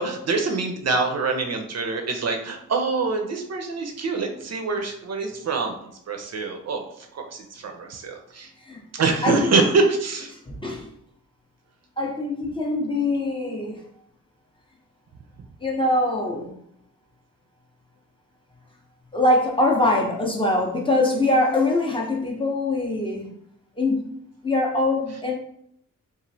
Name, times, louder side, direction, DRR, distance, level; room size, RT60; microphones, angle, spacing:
voice 1, 0.0-5.8 6.1-8.5 8.9-10.3, right 3 dB, 50° right, 3 dB, 0.5 m, -25 dB
voice 2, 9.2-9.5 10.5-10.9 12.0-13.8 15.6-16.5 19.1-23.3 23.8-24.1 24.4-25.3, left 2 dB, 15° left, -2 dB, 0.5 m, -23 dB
3.0 x 2.4 x 2.6 m, 0.70 s
wide cardioid pair, 120°, 33 cm